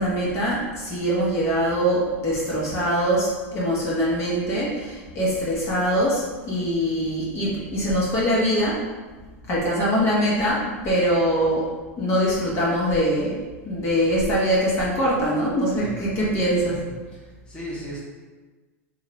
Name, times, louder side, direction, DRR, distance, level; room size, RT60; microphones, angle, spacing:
voice 1, 0.0-8.7 9.4-11.7 12.0-13.3 13.6-16.8, equal, 35° left, -6 dB, 1.0 m, -23 dB
voice 2, 15.8-16.1 16.6-18.0, right 1 dB, 10° left, -7 dB, 1.0 m, -37 dB
2.8 x 2.4 x 3.1 m, 1.3 s
hypercardioid pair, 100°, 8 cm